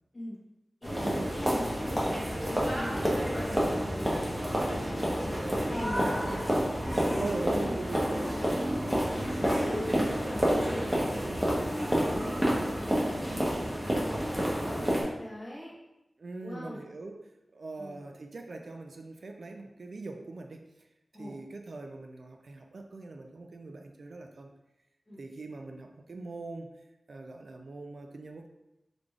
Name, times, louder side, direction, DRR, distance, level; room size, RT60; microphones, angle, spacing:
voice 1, 0.8-3.1 3.5-4.1 4.4-5.3 5.6-6.4 7.0-7.2 7.6-7.8 8.1-8.4 8.7-12.4 12.9-15.8 16.4-16.8 17.8-18.0 21.1-21.4 25.1-25.2, equal, 30° left, -5 dB, 1.1 m, -41 dB
sound 1, 0.8-15.0, equal, 15° right, 0.9 m, -29 dB
voice 2, 7.2-8.3 16.2-20.7 21.2-24.5 25.2-26.7 27.1-28.5, right 3 dB, 70° right, 4 dB, 0.3 m, -41 dB
3.8 x 3.3 x 2.3 m, 0.93 s
wide cardioid pair, 95°, 0 cm